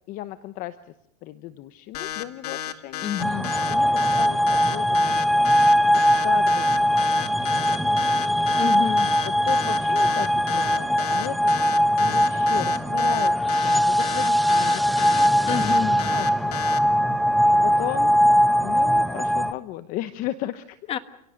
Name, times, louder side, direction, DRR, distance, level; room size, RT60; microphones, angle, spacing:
voice 1, 0.1-0.9 1.2-3.1 3.7-5.5 5.8-7.8 8.1-13.3 13.6-15.5 16.1-16.6 17.5-18.1 18.6-20.8, left 14 dB, 45° left, 12 dB, 1.0 m, -36 dB
sound 1, 1.9-16.8, left 11 dB, 85° left, 1.9 m, -32 dB
voice 2, 3.0-3.5 8.5-9.1 15.4-16.0 20.9-21.0, left 9 dB, 30° left, 11 dB, 1.5 m, -28 dB
sound 2, 3.2-19.5, equal, ahead, 0.8 m, -21 dB
29.5 x 17.5 x 6.5 m, 0.85 s
supercardioid pair, 135°, 20 cm